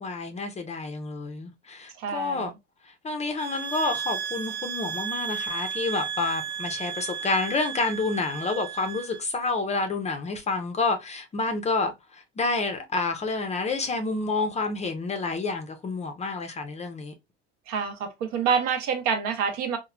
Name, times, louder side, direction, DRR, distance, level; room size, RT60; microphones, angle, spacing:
voice 1, 0.0-2.5 2.8-17.1, left 3 dB, 20° left, 0.5 m, -29 dB
voice 2, 1.9-2.5 17.7-19.8, right 6 dB, 65° right, 0.8 m, -27 dB
sound 1, 3.4-9.2, right 8 dB, 35° right, 0.5 m, -34 dB
3.0 x 2.1 x 2.3 m
supercardioid pair, 95°, 31 cm